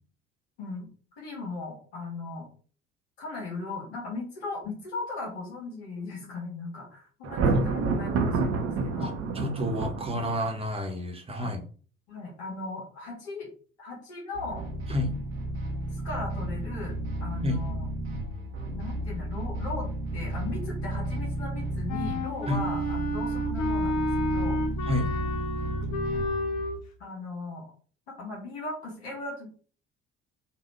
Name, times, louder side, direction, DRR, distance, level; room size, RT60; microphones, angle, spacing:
voice 1, 0.6-0.9 1.2-2.5 3.2-9.2 11.4-11.5 12.1-13.5 13.8-14.7 15.9-17.9 18.7-24.6 27.0-27.7 28.1-29.5, left 3 dB, 70° left, -3 dB, 1.7 m, -38 dB
Thunder, 7.2-10.6, right 4 dB, 50° right, 1.0 m, -27 dB
voice 2, 9.0-11.6 14.9-15.2 17.4-17.6 22.5-22.6 24.9-25.1, left 1 dB, 15° right, 3 dB, 1.3 m, -30 dB
sound 1, 14.3-26.8, right 1 dB, 70° right, 1.2 m, -33 dB
Wind instrument woodwind instrument, 21.9-26.8, left 1 dB, 55° left, 1.0 m, -30 dB
5.7 x 2.8 x 3.3 m, 0.41 s
figure-of-eight pair, 50°, 33 cm